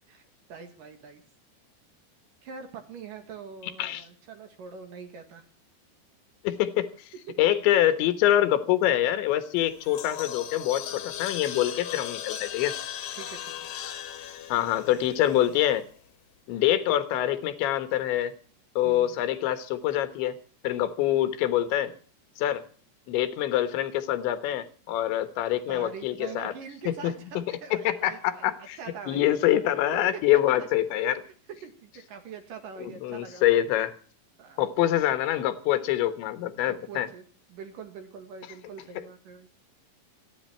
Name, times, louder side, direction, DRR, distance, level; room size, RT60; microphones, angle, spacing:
voice 1, 0.5-1.2 2.4-5.5 7.3-7.4 13.1-13.5 18.8-19.2 25.7-29.3 30.1-30.2 30.6-30.7 31.0-31.3 31.6-33.5 34.4-34.6 36.5-39.5, right 6 dB, 55° right, 7 dB, 3.0 m, -43 dB
voice 2, 6.5-6.9 7.4-12.7 13.8-13.9 14.5-15.9 16.5-18.3 18.8-20.4 20.6-21.9 22.4-22.6 23.1-26.5 26.9-27.4 27.7-28.8 29.1-31.2 32.8-33.9 34.6-37.1, left 13 dB, 80° left, 12 dB, 3.6 m, -25 dB
sound 1, 9.6-15.9, left 10 dB, 65° left, 2.8 m, -38 dB
27.0 x 10.0 x 4.4 m, 0.42 s
omnidirectional pair, 5.2 m